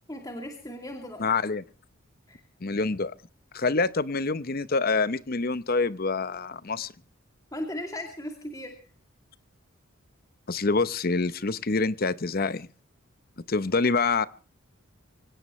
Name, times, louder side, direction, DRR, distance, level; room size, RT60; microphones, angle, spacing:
voice 1, 0.1-1.4 2.3-2.4 7.5-8.8, left 1 dB, 15° left, 3 dB, 2.5 m, -37 dB
voice 2, 1.2-1.6 2.6-3.1 3.5-6.9 10.5-12.7 13.5-14.3, left 3 dB, 45° left, 16 dB, 0.8 m, -26 dB
25.0 x 17.0 x 3.1 m, 0.37 s
head